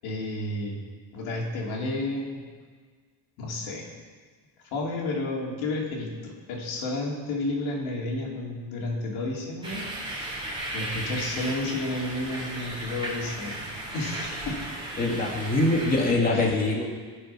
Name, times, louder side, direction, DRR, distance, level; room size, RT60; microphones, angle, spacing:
voice 1, 0.0-0.8 1.1-2.4 3.4-3.9 4.7-10.5 10.7-13.6 13.9-14.6 16.3-16.6, left 2 dB, 90° left, -3 dB, 3.8 m, -31 dB
sound 1, 9.6-16.1, right 1 dB, 10° right, 3.5 m, -35 dB
voice 2, 15.0-16.9, left 2 dB, 20° left, -1 dB, 2.0 m, -23 dB
18.5 x 6.8 x 6.0 m, 1.5 s
cardioid pair, 145°, 46 cm